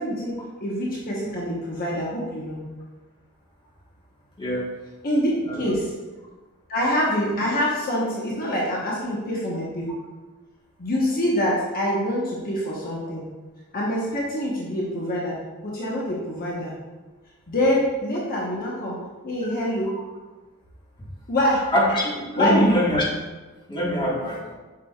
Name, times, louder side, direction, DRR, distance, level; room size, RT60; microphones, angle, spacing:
voice 1, 0.0-2.6 5.0-5.9 6.7-9.9 10.8-13.2 13.7-15.4 15.6-16.7 17.5-19.0 19.2-20.0 21.3-21.7 22.3-22.8, equal, 40° left, -5 dB, 1.1 m, -25 dB
voice 2, 21.7-23.1 23.7-24.5, equal, 20° left, -4 dB, 1.4 m, -23 dB
7.5 x 6.0 x 2.4 m, 1.2 s
head